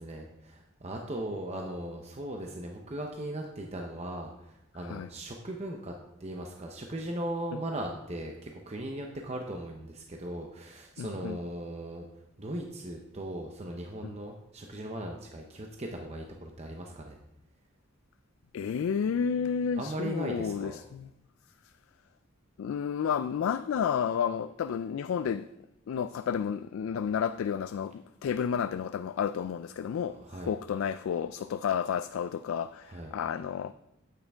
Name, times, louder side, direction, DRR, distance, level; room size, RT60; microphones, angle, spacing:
voice 1, 0.0-5.9 6.2-12.1 12.4-17.2 19.8-20.8 30.0-30.5 32.9-33.1, right 1 dB, 30° right, 0.7 m, -38 dB
voice 2, 11.0-11.4 14.0-14.1 18.5-21.1 22.6-25.5 25.9-33.7, left 7 dB, 80° left, 0.3 m, -31 dB
8.8 x 8.6 x 3.5 m
head